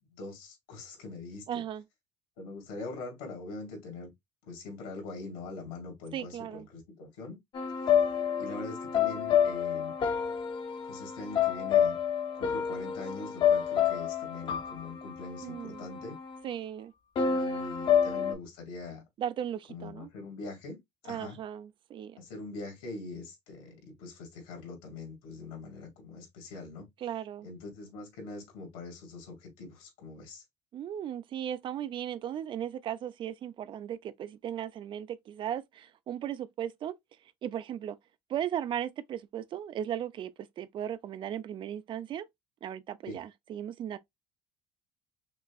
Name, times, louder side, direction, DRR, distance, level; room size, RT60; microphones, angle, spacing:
voice 1, 0.1-1.5 2.4-4.1 4.4-7.4 8.4-9.9 10.8-12.0 12.4-16.2 17.2-19.0 19.7-21.4 22.2-26.8 27.4-30.4 43.1-43.2, left 3 dB, 90° left, 2.5 m, -43 dB
voice 2, 1.5-1.8 6.1-6.7 15.4-15.9 16.4-16.9 19.2-20.1 21.1-22.2 27.0-27.5 30.7-36.9 37.4-38.0 38.3-42.3 42.6-44.0, right 10 dB, 40° right, 0.4 m, -36 dB
sound 1, 7.5-16.4 17.2-18.3, left 8 dB, 40° left, 0.8 m, -28 dB
5.9 x 2.1 x 2.3 m
cardioid pair, 135°, 13 cm